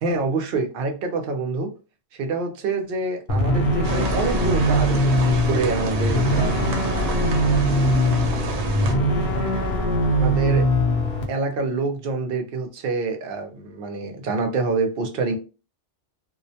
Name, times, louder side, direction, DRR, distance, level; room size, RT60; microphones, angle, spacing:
voice 1, 0.0-1.7 2.1-6.6 10.2-10.7 11.3-15.4, right 3 dB, 60° right, 4 dB, 0.7 m, -26 dB
sound 1, 3.3-11.2, equal, 55° left, 0.8 m, -21 dB
sound 2, 3.8-8.9, right 3 dB, 85° right, 0.9 m, -28 dB
2.4 x 2.1 x 2.6 m, 0.33 s
omnidirectional pair, 1.3 m